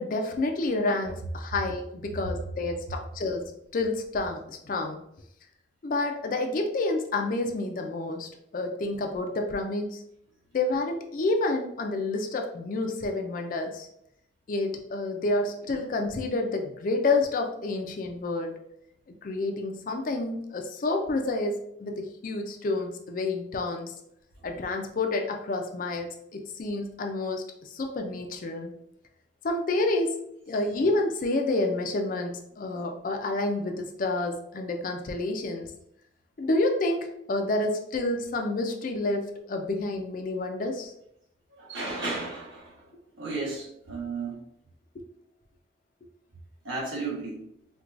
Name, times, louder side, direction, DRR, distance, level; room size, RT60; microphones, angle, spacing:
voice 1, 0.0-5.0 5.8-10.0 10.5-13.9 14.5-18.5 19.2-23.9 24.4-28.7 29.4-30.2 30.5-35.7 36.4-40.9, left 2 dB, 45° left, 4 dB, 0.4 m, -29 dB
voice 2, 41.5-44.4 46.6-47.4, right 3 dB, 85° right, -4 dB, 1.3 m, -34 dB
4.5 x 2.2 x 2.5 m, 0.75 s
head